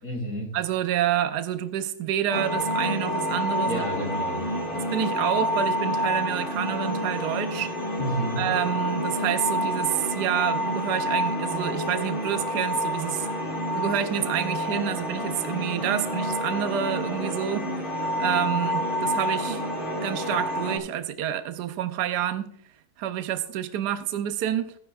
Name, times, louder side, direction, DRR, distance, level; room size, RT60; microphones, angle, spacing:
voice 1, 0.0-0.5 3.6-4.8 8.0-8.5, equal, 55° left, -1 dB, 3.6 m, -31 dB
voice 2, 0.5-3.8 4.7-7.7 8.4-17.7 18.2-19.7 20.0-22.5 23.0-24.8, right 11 dB, 80° right, 9 dB, 1.2 m, -28 dB
sound 1, 2.3-20.8, equal, 30° left, 2.1 m, -28 dB
14.0 x 10.0 x 2.3 m, 0.66 s
omnidirectional pair, 1.7 m